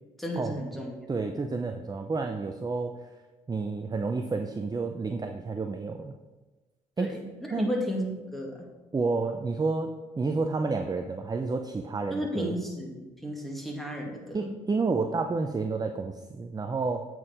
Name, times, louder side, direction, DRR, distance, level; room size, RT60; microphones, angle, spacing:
voice 1, 0.2-1.0 7.0-8.0 8.3-8.6 12.1-14.5, equal, ahead, -1 dB, 2.2 m, -33 dB
voice 2, 1.1-2.9 3.5-6.1 7.0-7.1 7.5-7.7 8.9-9.9 10.2-12.5 14.3-17.1, right 4 dB, 25° right, 6 dB, 0.6 m, -30 dB
8.4 x 4.6 x 5.0 m, 1.2 s
supercardioid pair, 60°, 16 cm